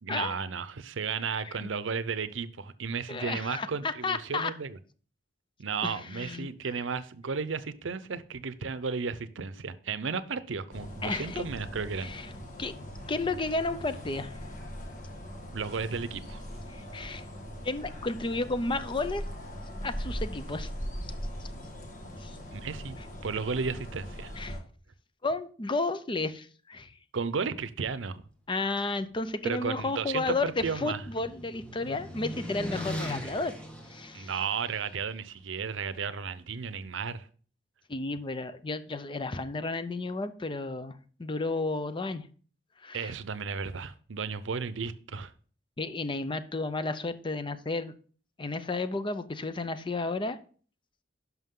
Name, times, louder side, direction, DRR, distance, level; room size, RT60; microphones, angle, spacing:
voice 1, 0.0-4.8 5.6-12.1 15.5-16.4 22.5-23.0 23.2-24.3 27.1-28.2 29.4-31.0 34.1-37.3 42.9-45.3, right 5 dB, 80° right, 0.6 m, -34 dB
voice 2, 3.1-4.5 5.8-6.7 11.0-11.4 12.0-12.3 12.6-12.7 13.1-14.3 16.7-17.2 17.6-19.2 19.8-20.7 22.2-22.4 23.0-23.1 24.4-24.6 25.2-27.0 28.5-33.5 33.9-34.3 37.9-42.3 42.8-43.1 45.8-47.9 48.4-50.4, left 3 dB, 25° left, 0.6 m, -32 dB
sound 1, 10.7-24.6, equal, 45° left, 1.7 m, -40 dB
sound 2, 29.6-34.9, equal, 5° left, 1.6 m, -40 dB
11.0 x 5.9 x 3.7 m
head